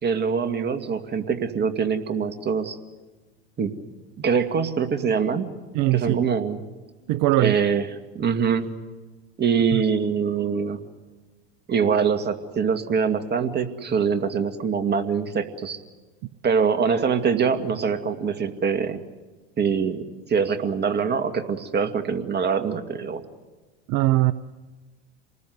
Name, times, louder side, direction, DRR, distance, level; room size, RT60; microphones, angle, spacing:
voice 1, 0.0-2.8 3.6-3.7 4.2-5.5 5.9-6.6 7.4-7.8 8.1-8.7 9.4-10.8 11.7-15.8 16.4-19.0 19.6-20.0 20.3-23.2, right 6 dB, 30° right, 2.3 m, -24 dB
voice 2, 5.7-6.2 7.1-7.6 9.7-9.8 23.9-24.3, right 17 dB, 55° right, 0.8 m, -20 dB
27.5 x 20.0 x 8.0 m
hypercardioid pair, 90°, 33 cm